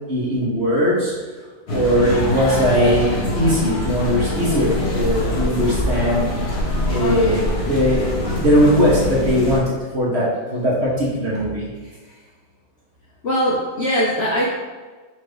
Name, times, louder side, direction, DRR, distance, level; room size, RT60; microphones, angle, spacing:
voice 1, 0.1-1.1 1.7-3.1 3.3-6.3 6.9-11.7, equal, 50° right, -5 dB, 0.9 m, -19 dB
sound 1, 1.7-9.6, left 1 dB, 45° left, 1.0 m, -24 dB
voice 2, 11.8-12.2 13.2-14.5, equal, 60° left, -6 dB, 0.7 m, -22 dB
4.5 x 2.5 x 4.7 m, 1.4 s
omnidirectional pair, 1.8 m